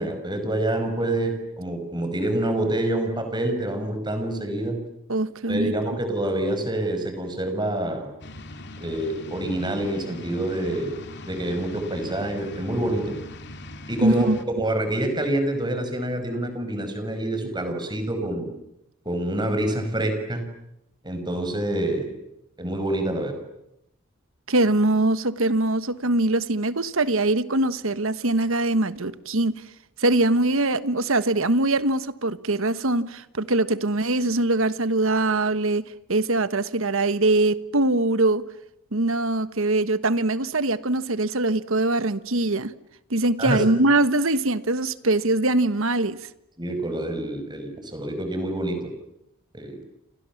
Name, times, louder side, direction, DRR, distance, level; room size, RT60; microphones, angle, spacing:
voice 1, 0.0-4.8 5.5-8.1 8.8-11.0 11.3-13.2 13.9-14.3 14.6-18.5 19.1-20.4 21.0-22.1 22.6-23.4 43.4-43.6 46.6-48.9 49.5-49.8, right 1 dB, 20° right, 5.3 m, -27 dB
voice 2, 5.1-5.8 14.0-14.4 24.5-29.5 30.0-38.4 38.9-42.7 43.1-46.2, right 2 dB, 65° right, 1.3 m, -22 dB
sound 1, 8.2-14.4, left 2 dB, 50° left, 2.5 m, -40 dB
29.5 x 28.0 x 7.2 m
head